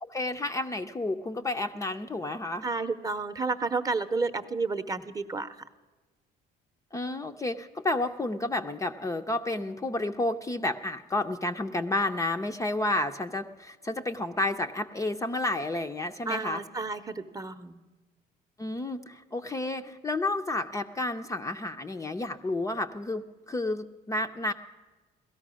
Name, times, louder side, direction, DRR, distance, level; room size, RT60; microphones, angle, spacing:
voice 1, 0.0-2.7 6.9-16.6 18.6-24.5, left 2 dB, 20° left, 6 dB, 0.5 m, -31 dB
voice 2, 2.6-5.6 16.3-17.8, right 3 dB, 20° right, 9 dB, 0.8 m, -31 dB
17.5 x 13.0 x 6.2 m, 1.2 s
cardioid pair, 110°, 17 cm